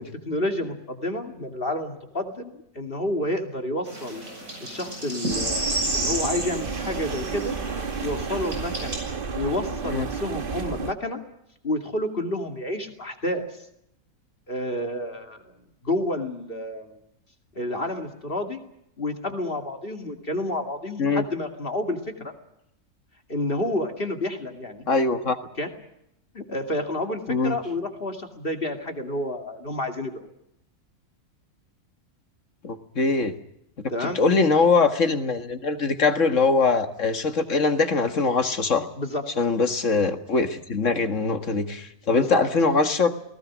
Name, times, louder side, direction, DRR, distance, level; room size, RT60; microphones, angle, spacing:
voice 1, 0.0-4.2 4.6-5.7 5.9-7.6 8.0-9.0 9.3-11.2 11.6-13.5 14.5-15.5 15.8-17.0 17.5-18.6 19.0-22.3 23.3-24.9 25.6-25.7 26.3-30.3 33.9-34.2 39.0-39.3 42.1-42.4, left 1 dB, 40° left, 5 dB, 2.7 m, -29 dB
sound 1, 3.9-9.0, right 1 dB, 65° right, 8.5 m, -31 dB
sound 2, 5.3-10.9, right 5 dB, 40° right, 1.3 m, -32 dB
voice 2, 24.9-25.4 27.3-27.6 32.6-33.3 34.0-38.9 39.4-43.1, left 4 dB, 55° left, 8 dB, 2.1 m, -22 dB
29.0 x 19.5 x 6.2 m, 0.78 s
omnidirectional pair, 1.6 m